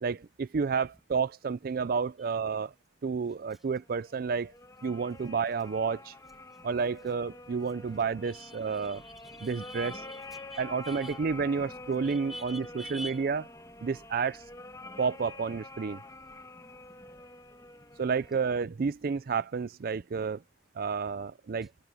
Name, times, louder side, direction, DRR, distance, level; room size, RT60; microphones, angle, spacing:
voice 1, 0.0-2.7 3.0-4.5 4.8-6.1 6.6-9.0 9.4-9.9 10.6-12.6 12.9-13.4 13.8-14.5 15.0-16.0 18.0-20.4 20.8-21.7, right 5 dB, 50° right, 0.4 m, -30 dB
sound 1, 4.0-18.3, left 2 dB, 20° left, 1.4 m, -47 dB
voice 2, 8.2-11.2 12.0-13.2 18.3-18.4, equal, ahead, 1.7 m, -46 dB
head